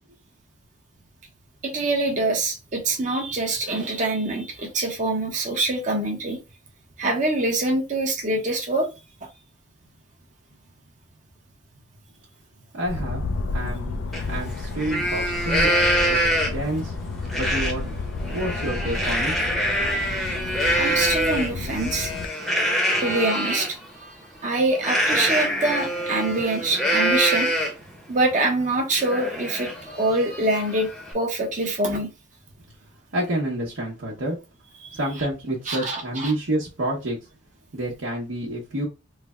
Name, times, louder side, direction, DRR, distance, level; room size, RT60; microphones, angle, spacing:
voice 1, 1.6-6.4 7.0-8.9 20.7-22.1 23.0-23.8 24.4-27.5 28.1-30.9 31.1-32.1 34.8-35.0 35.7-36.3, right 2 dB, 40° right, 1 dB, 0.8 m, -24 dB
voice 2, 12.7-13.2 13.5-15.7 16.1-16.9 17.4-18.0 18.3-19.3 33.1-34.4 34.9-37.2 37.7-38.9, right 1 dB, 80° right, -5 dB, 0.9 m, -28 dB
sound 1, 12.8-22.3, left 3 dB, 80° left, 0.4 m, -31 dB
Livestock farm animals working animals, 14.1-14.2 14.6-16.7 17.3-17.7 18.1-23.7 24.8-27.9 28.3-28.4 28.8-31.1, equal, ahead, 0.7 m, -25 dB
3.3 x 2.1 x 3.5 m, 0.28 s
head